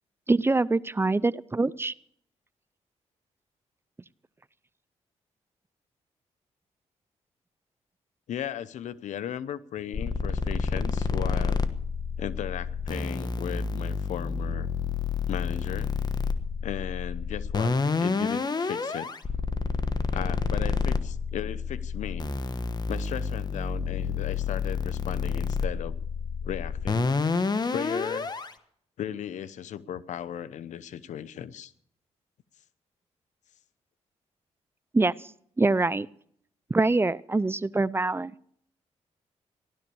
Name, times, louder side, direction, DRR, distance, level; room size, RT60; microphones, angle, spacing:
voice 1, 0.3-1.9 34.9-35.1 35.6-36.1 36.7-38.3, right 3 dB, 20° right, 20 dB, 0.5 m, -24 dB
voice 2, 8.3-11.6 12.2-14.7 15.3-15.9 16.6-19.1 20.1-22.3 22.9-26.0 26.4-27.0 27.4-28.3 29.0-31.7, left 10 dB, 80° left, 16 dB, 0.8 m, -36 dB
sound 1, 9.9-28.5, left 4 dB, 35° left, 1.3 m, -29 dB
16.0 x 12.0 x 7.0 m, 0.65 s
cardioid pair, 75°, 12 cm